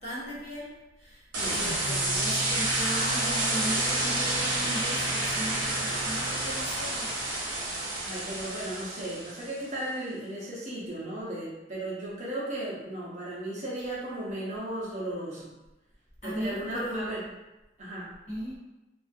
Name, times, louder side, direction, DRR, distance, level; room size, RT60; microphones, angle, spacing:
voice 1, 0.0-1.3 1.5-7.1 13.8-13.9 16.2-17.2 18.3-18.6, equal, 35° left, -8 dB, 0.9 m, -37 dB
sound 1, 1.3-9.6, right 2 dB, 85° right, 0.7 m, -29 dB
voice 2, 8.0-15.5 16.2-17.2 17.8-18.1, right 1 dB, 40° right, -6 dB, 0.6 m, -35 dB
2.4 x 2.3 x 2.5 m, 1.0 s
head